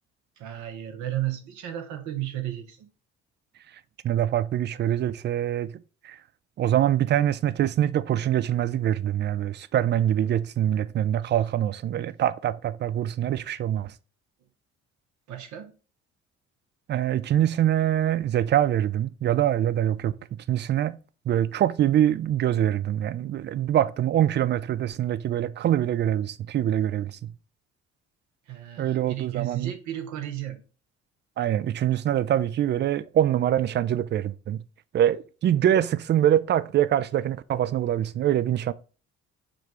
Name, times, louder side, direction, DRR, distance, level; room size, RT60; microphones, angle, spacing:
voice 1, 0.4-2.9 11.2-11.3 15.3-15.7 28.5-30.6, right 13 dB, 65° right, 0.9 m, -33 dB
voice 2, 4.0-5.7 6.0-6.2 6.6-13.9 16.9-20.2 20.5-21.0 21.3-27.3 28.8-29.7 31.4-34.6 34.9-38.7, right 11 dB, 35° right, 0.4 m, -24 dB
4.9 x 2.4 x 4.4 m
hypercardioid pair, 50°, 32 cm